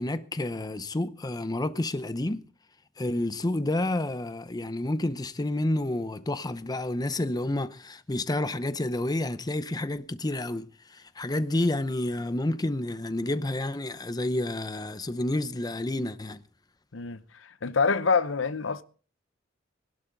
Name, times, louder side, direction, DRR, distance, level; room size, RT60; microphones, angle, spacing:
voice 1, 0.0-2.4 3.0-16.4, left 1 dB, 20° left, 0.7 m, -29 dB
voice 2, 16.9-18.8, left 5 dB, 85° left, 0.8 m, -26 dB
20.0 x 11.5 x 3.9 m
head